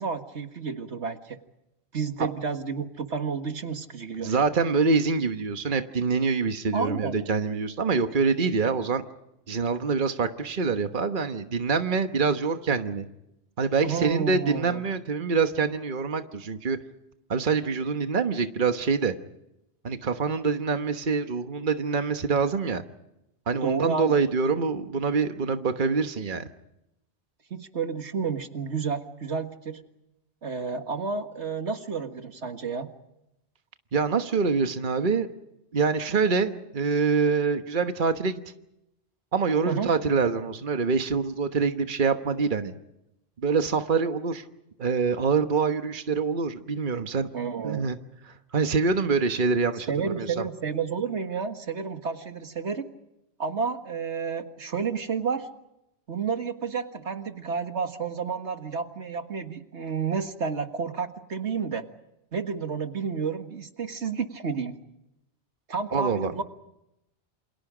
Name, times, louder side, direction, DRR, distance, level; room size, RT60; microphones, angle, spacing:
voice 1, 0.0-1.4 1.9-4.4 6.7-7.2 13.8-14.8 23.6-24.2 27.5-29.8 30.4-32.9 39.7-39.9 47.3-47.9 49.9-52.9 53.4-55.5 56.1-61.8 62.3-64.8 65.7-66.4, right 5 dB, 85° right, 7 dB, 2.0 m, -31 dB
voice 2, 4.2-9.0 9.5-13.1 13.6-16.8 17.3-19.1 19.8-22.8 23.5-26.4 33.9-35.3 35.7-38.4 39.3-42.7 43.4-44.4 44.8-47.3 47.6-48.0 48.3-50.4 65.9-66.3, right 5 dB, 50° right, 7 dB, 1.4 m, -25 dB
28.5 x 27.5 x 5.0 m, 0.87 s
omnidirectional pair, 1.1 m